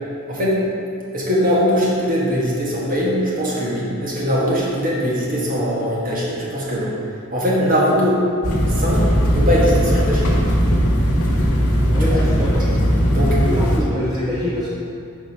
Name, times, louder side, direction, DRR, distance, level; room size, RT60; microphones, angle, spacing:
voice 1, 0.3-0.6 1.1-6.9 7.3-8.2 8.7-10.3 12.0-12.2 13.1-13.4, equal, 40° right, -5 dB, 1.4 m, -21 dB
sound 1, 8.4-13.8, equal, 70° left, 1.0 m, -18 dB
voice 2, 11.9-12.7 13.4-14.7, left 1 dB, 15° right, -8 dB, 0.7 m, -24 dB
5.1 x 4.6 x 5.3 m, 2.5 s
head